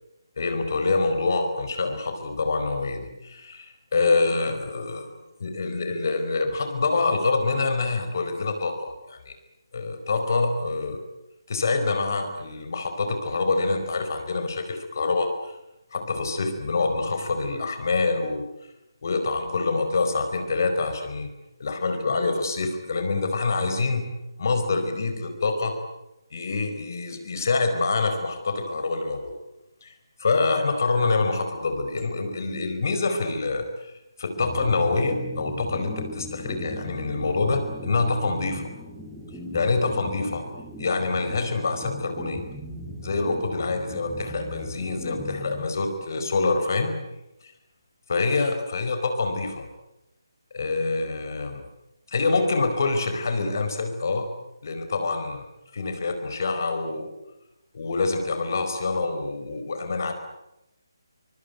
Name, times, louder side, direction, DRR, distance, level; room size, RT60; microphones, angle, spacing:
voice 1, 0.4-5.1 5.4-9.3 9.7-11.0 11.5-15.6 15.9-18.4 19.0-21.3 21.6-24.1 24.4-25.8 26.3-29.3 29.8-29.9 30.2-33.9 34.2-38.6 39.5-40.4 40.8-42.4 43.0-47.0 48.1-49.7 50.5-51.6 52.1-54.3 54.6-55.5 55.7-57.1 57.7-60.1, left 3 dB, 45° left, 7 dB, 4.7 m, -26 dB
sound 1, 34.4-46.3, equal, ahead, 5.8 m, -38 dB
25.0 x 24.5 x 9.3 m, 0.89 s
figure-of-eight pair, 150°, 2 cm